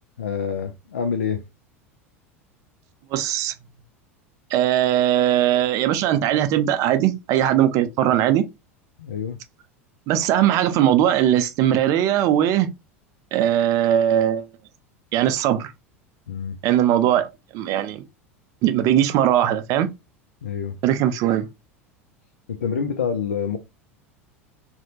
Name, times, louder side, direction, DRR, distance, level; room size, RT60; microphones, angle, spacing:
voice 1, 0.2-1.4 9.0-9.4 16.3-16.6 20.4-20.8 22.5-23.6, left 6 dB, 75° left, 0.4 m, -27 dB
voice 2, 3.1-3.5 4.5-8.5 10.1-12.7 13.3-14.5 15.1-15.7 16.6-18.0 18.6-19.9 20.8-21.5, right 11 dB, 45° right, 0.4 m, -20 dB
2.6 x 2.1 x 2.8 m
figure-of-eight pair, 80°, 8 cm